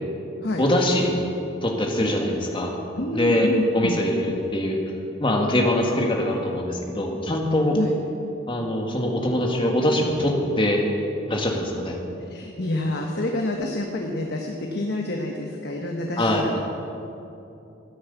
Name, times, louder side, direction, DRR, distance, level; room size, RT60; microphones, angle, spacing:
voice 1, 0.6-1.2 1.6-2.8 3.1-3.5 3.7-4.8 5.2-7.8 8.5-10.8 11.3-12.0 16.2-16.6, left 1 dB, 25° left, 1 dB, 1.8 m, -23 dB
voice 2, 3.0-4.0 7.7-7.9 12.3-16.5, left 1 dB, 55° left, 1 dB, 1.1 m, -28 dB
14.5 x 9.5 x 8.2 m, 2.8 s
head